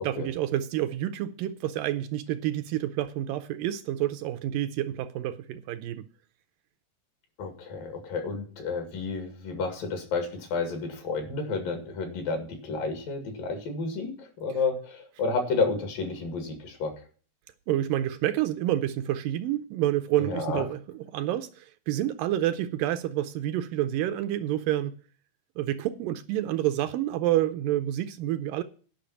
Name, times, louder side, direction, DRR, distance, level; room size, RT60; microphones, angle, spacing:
voice 1, 0.0-6.1 17.7-24.9 25.6-28.6, right 13 dB, 80° right, 2.1 m, -28 dB
voice 2, 7.4-16.9 20.2-20.7, left 4 dB, 70° left, 3.8 m, -31 dB
10.5 x 5.7 x 8.5 m
omnidirectional pair, 4.2 m